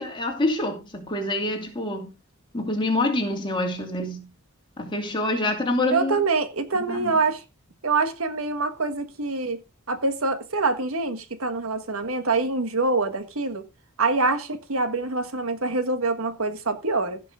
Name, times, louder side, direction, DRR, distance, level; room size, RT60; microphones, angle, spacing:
voice 1, 0.0-2.1 2.5-4.3 4.8-6.2 6.9-7.2, left 2 dB, 25° left, 2.7 m, -26 dB
voice 2, 5.9-7.4 7.8-9.6 9.9-13.7 14.0-17.2, right 3 dB, 75° right, 1.4 m, -25 dB
16.0 x 6.2 x 3.6 m
head